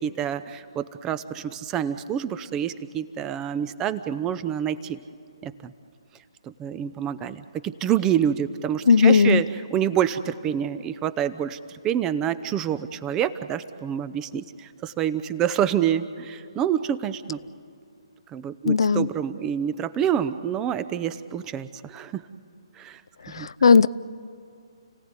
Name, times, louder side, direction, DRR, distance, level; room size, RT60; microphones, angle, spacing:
voice 1, 0.0-5.0 5.4-5.7 6.6-17.4 18.3-22.2 22.8-23.0 23.3-23.5, right 9 dB, 15° right, 0.7 m, -27 dB
voice 2, 8.9-9.4 18.7-19.1 23.4-23.9, left 5 dB, 65° left, 0.5 m, -16 dB
30.0 x 17.0 x 9.5 m
figure-of-eight pair, 135°, 3 cm